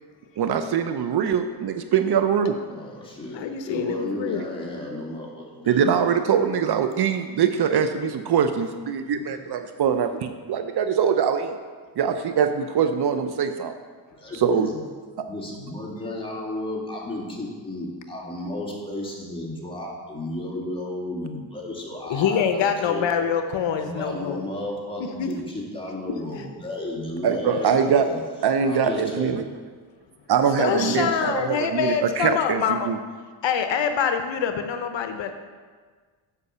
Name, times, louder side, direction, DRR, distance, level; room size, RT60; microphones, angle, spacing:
voice 1, 0.4-2.6 5.7-11.6 12.0-13.7 14.3-14.7 15.2-15.3 27.2-28.1 28.4-29.4 30.3-33.0, right 7 dB, 55° right, 8 dB, 0.7 m, -23 dB
voice 2, 2.7-3.4 3.7-5.9 8.4-8.5 9.1-9.2 14.1-14.8 15.3-23.3 23.8-28.2 28.6-29.4 30.7-31.2, left 2 dB, 10° left, -4 dB, 2.5 m, -33 dB
voice 3, 3.3-4.4 22.1-24.4 25.2-25.3 30.6-32.9 33.4-35.3, left 7 dB, 65° left, 7 dB, 0.8 m, -25 dB
8.2 x 5.4 x 6.7 m, 1.5 s
cardioid pair, 80°, 48 cm